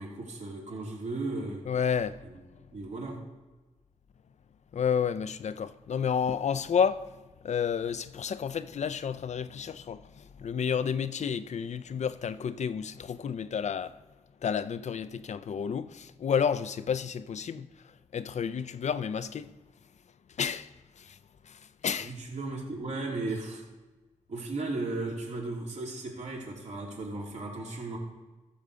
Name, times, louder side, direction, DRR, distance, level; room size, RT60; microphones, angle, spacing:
voice 1, 0.0-1.6 2.2-2.4 2.7-3.2 22.0-23.6 24.3-28.0, right 2 dB, 65° right, 3.3 m, -36 dB
voice 2, 1.7-2.2 4.7-7.2 7.4-14.0 14.4-17.7 18.1-19.5 20.4-20.7 21.0-21.2 21.4-22.2, left 7 dB, 65° left, 0.5 m, -31 dB
14.0 x 5.0 x 6.8 m
cardioid pair, 65°, 13 cm